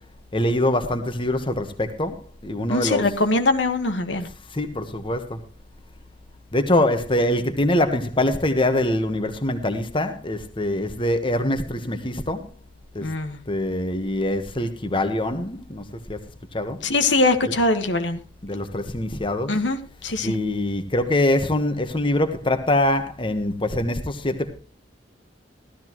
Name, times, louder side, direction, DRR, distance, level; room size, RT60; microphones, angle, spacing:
voice 1, 0.3-2.2 2.4-3.0 4.5-5.4 6.5-12.4 12.9-13.0 13.5-15.8 16.1-16.2 16.5-16.8 18.4-19.5 20.2-24.5, left 1 dB, 30° left, 1.3 m, -23 dB
voice 2, 2.7-4.3 13.0-13.4 16.8-18.2 19.5-20.4, left 2 dB, 85° left, 1.5 m, -22 dB
15.5 x 13.0 x 3.0 m
head